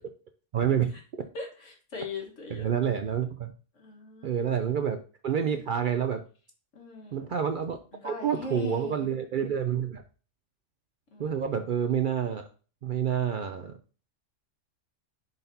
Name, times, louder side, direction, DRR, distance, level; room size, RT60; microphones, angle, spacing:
voice 1, 0.5-0.9 2.6-3.5 4.2-6.2 7.1-7.8 8.0-10.0 11.2-12.5 12.8-13.7, right 8 dB, 60° right, 8 dB, 0.5 m, -28 dB
voice 2, 1.3-2.7 3.7-4.5 6.7-7.4 7.9-9.2 11.1-11.6, left 3 dB, 80° left, 0 dB, 1.8 m, -41 dB
10.5 x 4.1 x 2.7 m, 0.37 s
omnidirectional pair, 1.3 m